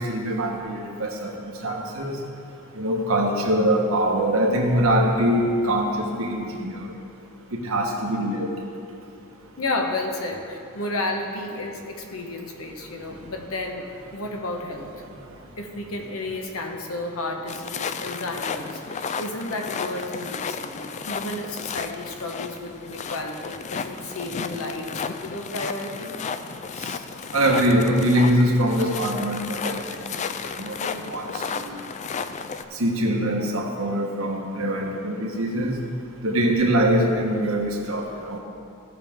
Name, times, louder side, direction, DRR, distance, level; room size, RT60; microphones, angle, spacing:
voice 1, 0.1-1.3 1.6-2.2 2.7-6.8 7.5-8.5 27.3-29.8 30.6-31.8 32.7-35.7 36.2-38.4, right 1 dB, 75° right, 0 dB, 1.3 m, -23 dB
voice 2, 9.6-13.9 14.1-14.9 15.6-26.2 36.3-36.6, left 2 dB, 80° left, 3 dB, 1.1 m, -32 dB
sound 1, 17.5-32.6, left 5 dB, 35° left, 0.3 m, -33 dB
15.5 x 6.0 x 3.6 m, 2.7 s
head